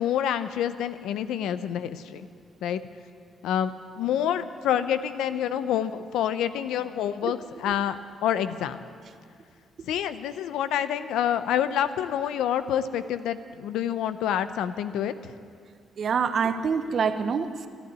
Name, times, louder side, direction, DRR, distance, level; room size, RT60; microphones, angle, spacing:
voice 1, 0.0-2.3 2.6-2.8 3.4-7.4 7.6-8.8 9.9-15.3, left 10 dB, 85° left, 12 dB, 0.6 m, -27 dB
voice 2, 16.0-17.7, right 6 dB, 55° right, 10 dB, 0.9 m, -26 dB
12.0 x 11.5 x 9.7 m, 2.2 s
cardioid pair, 90°, 0 cm